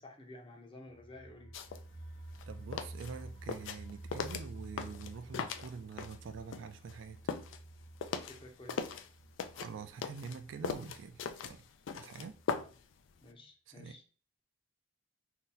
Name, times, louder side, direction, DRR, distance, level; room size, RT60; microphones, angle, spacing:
voice 1, 0.0-1.6 8.3-8.9 12.6-12.7 13.2-14.0, left 2 dB, 30° left, 0.6 m, -52 dB
sound 1, 0.9-11.6 11.9-12.0 12.3-12.4, right 1 dB, 45° right, 0.7 m, -51 dB
sound 2, 1.5-1.8 2.2-6.2 6.5-9.1 9.4-12.9 13.2-13.3, left 6 dB, 80° left, 0.3 m, -39 dB
voice 2, 2.5-7.2 9.5-11.6 11.9-12.4 13.7-14.0, right 5 dB, 75° right, 0.3 m, -46 dB
2.7 x 2.1 x 3.7 m
head